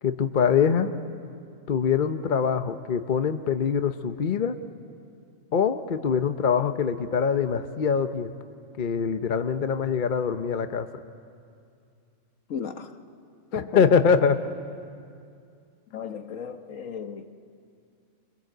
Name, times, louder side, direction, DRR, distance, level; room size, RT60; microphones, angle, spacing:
voice 1, 0.0-0.9 1.7-4.6 5.5-8.4 8.8-10.9 13.5-14.4, left 6 dB, 45° left, 0.8 m, -24 dB
voice 2, 12.5-12.9 13.5-13.8 15.9-17.3, left 7 dB, 70° left, 1.5 m, -34 dB
25.0 x 24.0 x 7.9 m
omnidirectional pair, 1.4 m